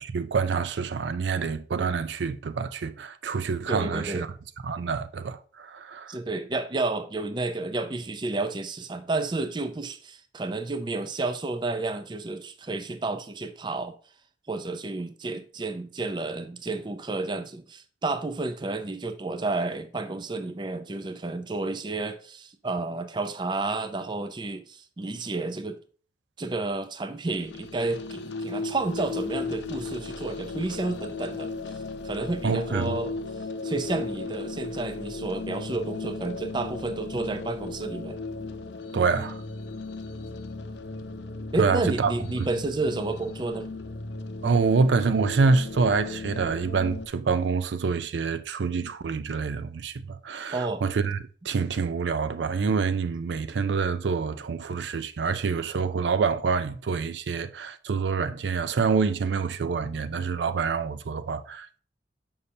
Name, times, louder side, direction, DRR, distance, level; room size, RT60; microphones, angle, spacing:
voice 1, 0.1-4.3 4.6-6.2 32.4-32.9 38.9-39.4 41.6-42.1 42.4-42.5 44.4-51.2 51.4-61.7, right 5 dB, 80° right, 0.4 m, -26 dB
voice 2, 3.7-4.2 6.1-14.0 14.5-25.8 26.4-33.1 33.6-38.2 41.5-43.7 50.5-50.8, right 2 dB, 25° right, 0.4 m, -31 dB
sound 1, 27.2-47.1, left 3 dB, 75° left, 0.6 m, -36 dB
6.6 x 5.5 x 2.7 m
head